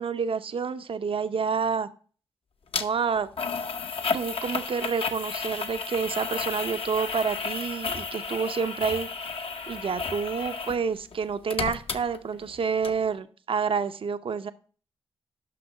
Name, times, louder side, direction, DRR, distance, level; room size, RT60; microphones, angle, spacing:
voice 1, 0.0-1.9 2.8-3.3 4.1-9.1 9.7-14.5, right 6 dB, 60° right, 11 dB, 0.6 m, -28 dB
sound 1, 2.7-2.8 3.4-10.8 11.1-12.6 12.8-12.9, left 5 dB, 65° left, 0.8 m, -32 dB
5.9 x 5.9 x 6.0 m, 0.40 s
cardioid pair, 45°, 10 cm